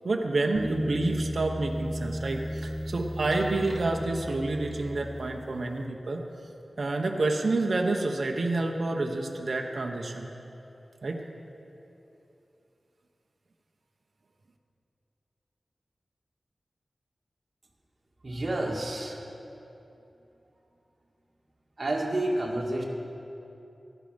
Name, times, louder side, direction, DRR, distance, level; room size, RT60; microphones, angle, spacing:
voice 1, 0.0-6.2 6.8-10.3 11.0-11.2, right 2 dB, 65° right, 2 dB, 1.0 m, -29 dB
sound 1, 0.6-5.5, equal, 20° right, 1.3 m, -34 dB
voice 2, 18.2-19.3 21.8-22.8, right 1 dB, 45° right, -2 dB, 2.1 m, -29 dB
14.5 x 12.0 x 5.2 m, 2.9 s
wide cardioid pair, 90°, 0 cm